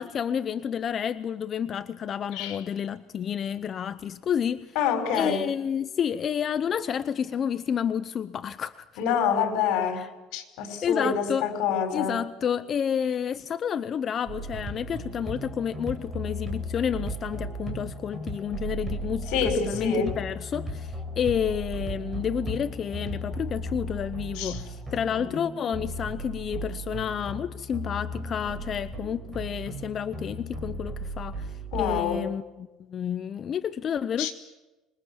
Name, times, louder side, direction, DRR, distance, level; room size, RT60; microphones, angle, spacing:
voice 1, 0.0-4.7 5.1-8.8 10.0-10.1 10.8-11.5 11.9-19.3 19.5-31.5 31.8-34.3, left 8 dB, 35° left, 0.7 m, -30 dB
voice 2, 4.8-5.5 9.0-12.2 19.3-20.1 24.3-24.6 25.1-25.3 31.7-32.2 34.2-34.3, left 7 dB, 70° left, 5.3 m, -27 dB
sound 1, 14.3-32.0, right 1 dB, 20° right, 7.5 m, -36 dB
26.0 x 22.5 x 7.3 m
cardioid pair, 135°, 0 cm